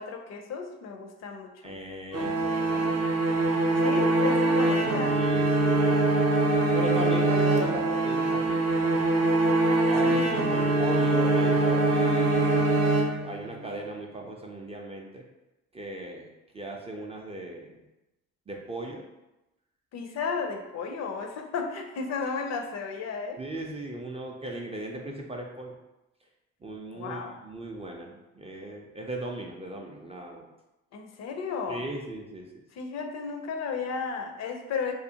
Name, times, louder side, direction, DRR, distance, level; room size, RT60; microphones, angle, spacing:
voice 1, 0.0-1.8 3.8-5.2 10.0-10.8 19.9-23.4 26.9-27.4 30.9-31.8 32.7-34.9, left 5 dB, 50° left, 4 dB, 0.4 m, -34 dB
voice 2, 1.6-3.6 4.2-4.3 4.6-4.8 5.1-6.2 6.7-9.1 9.7-12.6 13.2-15.2 15.7-17.8 18.5-19.1 23.4-25.7 26.6-30.5 31.7-32.5, right 1 dB, 20° right, 0 dB, 0.3 m, -38 dB
sound 1, 2.1-13.6, right 2 dB, 50° right, 0.7 m, -23 dB
2.4 x 2.1 x 2.7 m, 0.97 s
hypercardioid pair, 60°, 34 cm